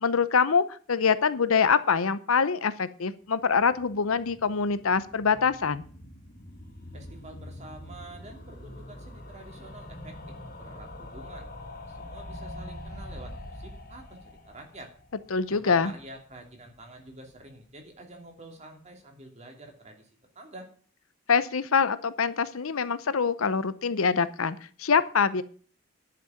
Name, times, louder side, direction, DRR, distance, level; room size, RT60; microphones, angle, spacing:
voice 1, 0.0-5.8 15.3-15.9 21.3-25.4, left 5 dB, 85° left, 14 dB, 0.8 m, -24 dB
sound 1, 3.4-16.5 16.8-16.9 17.1-17.2 17.4-17.5, left 1 dB, 40° left, 2.1 m, -44 dB
voice 2, 6.9-14.9 15.5-20.1 20.3-20.7, right 1 dB, 35° right, 2 dB, 2.8 m, -48 dB
10.5 x 6.1 x 8.8 m, 0.43 s
head